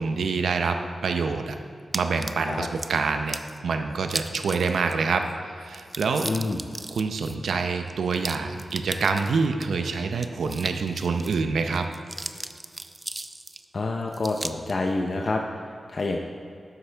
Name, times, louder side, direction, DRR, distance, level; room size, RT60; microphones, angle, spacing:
voice 1, 0.0-1.6 1.9-6.3 6.9-11.9, right 4 dB, 85° right, 6 dB, 0.6 m, -26 dB
sound 1, 1.9-2.9 3.3-3.6 4.0-4.9 5.2-5.3 5.6-9.7 10.1-11.4 11.7-13.6 14.1-14.7, right 2 dB, 30° right, 0.4 m, -36 dB
voice 2, 6.2-6.6 13.7-15.6 15.9-16.2, left 3 dB, 55° left, 2 dB, 0.6 m, -27 dB
11.5 x 8.0 x 3.4 m, 2.4 s
cardioid pair, 60°, 0 cm